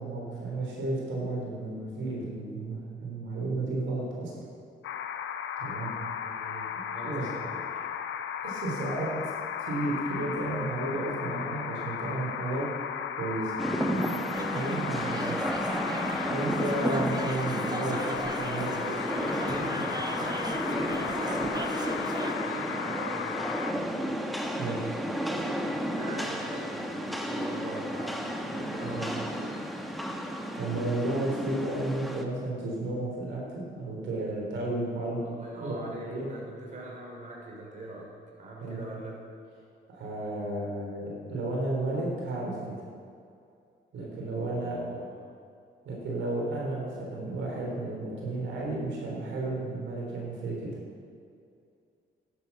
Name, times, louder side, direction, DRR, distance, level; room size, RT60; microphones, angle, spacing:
voice 1, 0.0-4.3 5.6-5.9 7.0-7.3 8.4-9.1 9.6-12.7 13.2-13.6 14.5-15.4 16.3-18.7 24.6-25.0 28.8-29.0 30.5-35.2 35.5-36.3 38.6-38.8 39.9-42.8 43.9-44.8 45.8-50.7, right 2 dB, 75° right, -3 dB, 3.6 m, -33 dB
sound 1, 4.8-23.7, left 8 dB, 75° left, 0.8 m, -35 dB
voice 2, 6.2-7.6 18.7-24.0 26.0-29.6 35.2-39.2 44.3-45.1, right 2 dB, 40° right, -3 dB, 3.6 m, -42 dB
Rain, 13.6-32.2, equal, ahead, 1.3 m, -33 dB
sound 2, 14.3-22.3, right 2 dB, 20° right, 1.2 m, -38 dB
11.0 x 10.5 x 5.9 m, 2.4 s
cardioid pair, 90°, 20 cm